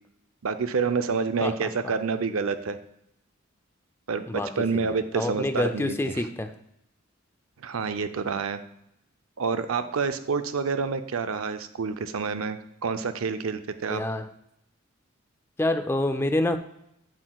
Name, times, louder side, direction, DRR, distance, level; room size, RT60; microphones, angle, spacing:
voice 1, 0.4-2.8 4.1-5.9 7.6-8.6 9.4-14.0, right 5 dB, 85° right, 10 dB, 0.5 m, -28 dB
voice 2, 4.3-6.5 13.9-14.3 15.6-16.6, left 1 dB, 10° left, 8 dB, 0.3 m, -27 dB
8.1 x 7.5 x 2.3 m, 0.78 s
head